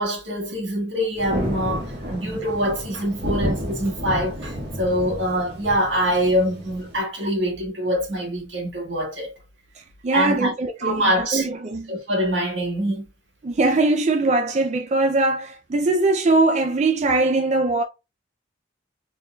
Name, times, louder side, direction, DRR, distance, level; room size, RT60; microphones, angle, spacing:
voice 1, 0.0-9.3 10.1-10.5 10.8-11.5 11.9-13.1, equal, 85° right, 1.7 m, -24 dB
Thunder, 1.2-7.0, equal, 60° right, 1.7 m, -31 dB
voice 2, 10.0-11.1 11.3-11.9 13.4-17.8, right 2 dB, 40° right, 0.4 m, -21 dB
4.0 x 3.7 x 2.3 m
head